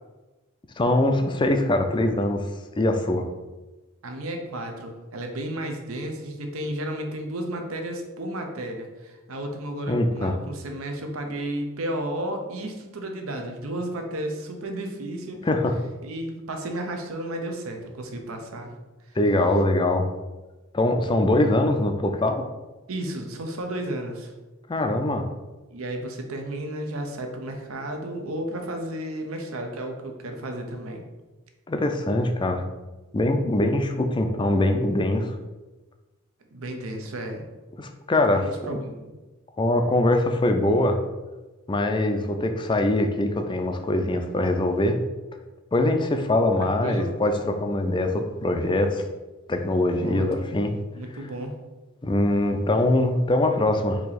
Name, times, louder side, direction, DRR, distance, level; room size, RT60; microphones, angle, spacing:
voice 1, 0.8-2.5 2.8-3.3 9.9-10.3 15.4-15.8 19.2-20.1 20.7-22.5 24.7-25.2 31.7-32.6 33.1-35.3 37.8-38.8 39.6-41.0 41.7-45.0 45.7-49.0 49.5-50.7 52.0-54.0, left 1 dB, 20° left, 5 dB, 0.4 m, -23 dB
voice 2, 4.0-15.4 16.0-18.7 19.1-19.2 22.9-24.3 25.7-31.0 36.5-37.5 38.3-39.2 46.6-47.1 50.0-50.5 50.9-51.5, right 1 dB, 75° right, 4 dB, 0.7 m, -33 dB
4.6 x 2.8 x 4.0 m, 1.2 s
head